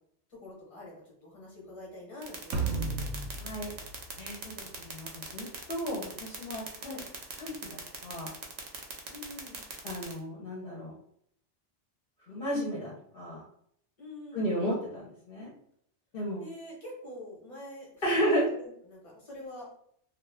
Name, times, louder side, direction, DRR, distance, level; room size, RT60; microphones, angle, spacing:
voice 1, 0.3-3.1 6.8-7.1 9.1-9.6 14.0-14.6 16.4-19.7, left 1 dB, 30° left, -3 dB, 1.0 m, -46 dB
sound 1, 2.2-10.1, right 5 dB, 50° right, 0.5 m, -40 dB
sound 2, 2.5-5.0, right 3 dB, 85° right, 1.0 m, -34 dB
voice 2, 3.4-3.7 4.2-7.0 7.4-8.3 9.8-10.9 12.3-13.4 14.3-15.5 16.1-16.4 18.0-18.4, equal, 55° left, -5 dB, 0.9 m, -33 dB
2.5 x 2.3 x 3.3 m, 0.67 s
omnidirectional pair, 1.2 m